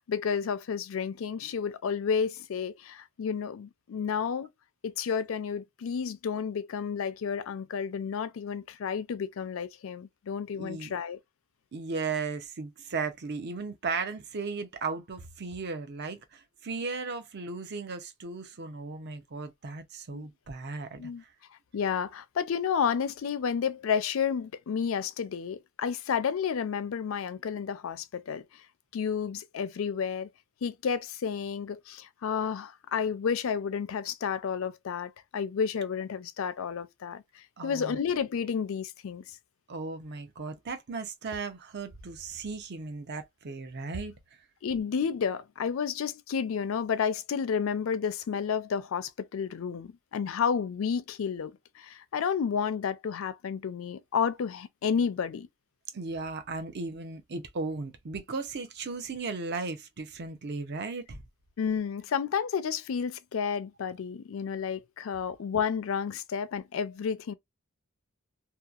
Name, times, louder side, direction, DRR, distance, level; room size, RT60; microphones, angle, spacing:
voice 1, 0.0-4.5 4.8-11.2 20.1-20.2 21.0-21.2 21.7-28.4 28.9-30.3 30.6-39.4 44.6-55.5 61.6-67.3, left 6 dB, 70° left, 0.4 m, -31 dB
voice 2, 10.5-10.9 11.7-21.1 37.6-38.0 39.7-44.2 55.9-61.2, right 4 dB, 55° right, 0.6 m, -36 dB
2.8 x 2.3 x 2.3 m
head